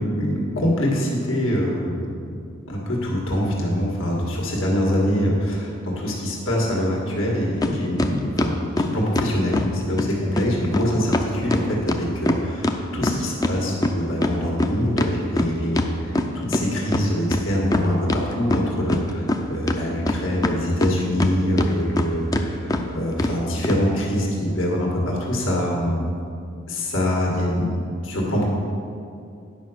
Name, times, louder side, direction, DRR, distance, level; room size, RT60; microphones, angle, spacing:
voice 1, 0.0-2.1 2.7-26.0 26.7-27.7 28.0-28.5, equal, 80° left, -3 dB, 1.8 m, -24 dB
sound 1, 7.6-7.7 8.0-9.7 10.0-10.1 10.4-10.5 10.7-10.8 11.1-13.6 13.8-16.6 16.9-17.0 17.3-18.2 18.5-19.4 19.7-21.3 21.6-22.1 22.3-22.4 22.7-22.8 23.2-23.3 23.6-23.8, left 2 dB, 20° left, 0.5 m, -22 dB
9.9 x 5.2 x 6.3 m, 2.5 s
head